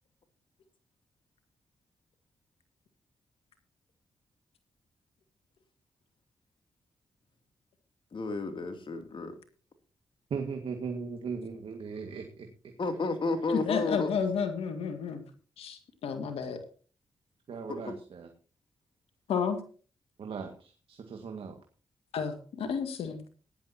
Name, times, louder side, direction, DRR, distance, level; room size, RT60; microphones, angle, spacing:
voice 1, 8.1-9.4 12.8-14.1 17.7-17.9, left 3 dB, 55° left, 7 dB, 2.8 m, -32 dB
voice 2, 10.3-12.5 17.5-18.3 20.2-21.6, right 5 dB, 70° right, 4 dB, 1.9 m, -38 dB
voice 3, 13.5-15.2 15.6-16.6 19.3-19.6 22.1-23.2, left 6 dB, 85° left, 7 dB, 2.0 m, -31 dB
17.5 x 11.0 x 2.9 m, 0.38 s
supercardioid pair, 50°, 10 cm